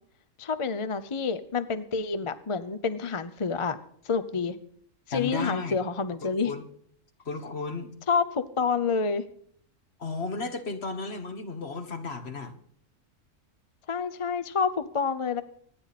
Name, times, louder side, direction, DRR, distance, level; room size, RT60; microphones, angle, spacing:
voice 1, 0.4-3.8 4.0-4.6 5.1-6.5 8.1-9.2 13.9-15.4, left 5 dB, 30° left, 12 dB, 0.6 m, -28 dB
voice 2, 5.1-5.8 6.2-6.7 7.3-8.0 10.0-12.5, left 4 dB, 55° left, 8 dB, 1.7 m, -34 dB
25.5 x 10.0 x 4.2 m, 0.64 s
omnidirectional pair, 1.3 m